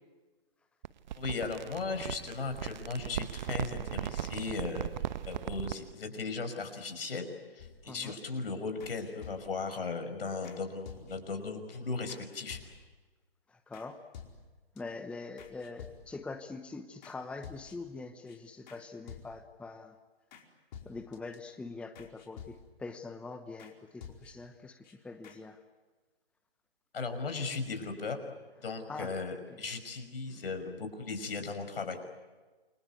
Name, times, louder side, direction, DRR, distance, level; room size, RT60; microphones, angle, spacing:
sound 1, 0.8-5.9, right 11 dB, 50° right, 1.1 m, -38 dB
voice 1, 1.1-4.9 5.2-12.6 26.9-28.2 28.6-32.0, left 4 dB, 70° left, 7 dB, 5.7 m, -37 dB
sound 2, 7.6-8.2 8.8-9.7 10.4-10.6 10.9-11.4 11.7-11.8 12.1-12.2 12.5-13.0 13.7-13.9 14.1-14.8 15.4-16.3 17.0-17.2 17.4-18.0 18.3-18.4 18.7-18.8 19.1-19.6 20.3-20.4 20.7-21.4 21.9-22.9 23.6-23.7 24.0-24.5 24.8-24.9 25.2-25.4, left 7 dB, 50° left, 4.9 m, -50 dB
voice 2, 13.5-14.0 14.8-19.9 20.8-25.6 28.9-29.1 30.3-30.4, left 3 dB, 5° left, 8 dB, 0.9 m, -44 dB
29.0 x 24.0 x 8.2 m, 1.3 s
hypercardioid pair, 135°, 30 cm